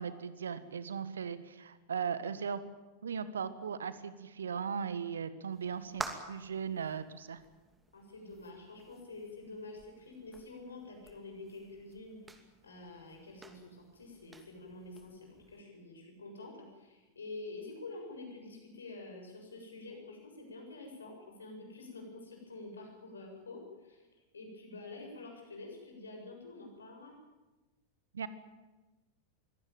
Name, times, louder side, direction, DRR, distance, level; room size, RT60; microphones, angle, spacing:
voice 1, 0.0-2.6 3.0-7.4 28.1-28.3, right 6 dB, 70° right, 14 dB, 1.4 m, -38 dB
sound 1, 5.5-15.6, right 3 dB, 10° right, 2.6 m, -50 dB
voice 2, 7.9-12.2 12.6-24.1 24.3-27.1, left 2 dB, 75° left, 2 dB, 7.4 m, -48 dB
23.0 x 17.0 x 9.2 m, 1.2 s
figure-of-eight pair, 90°, 0 cm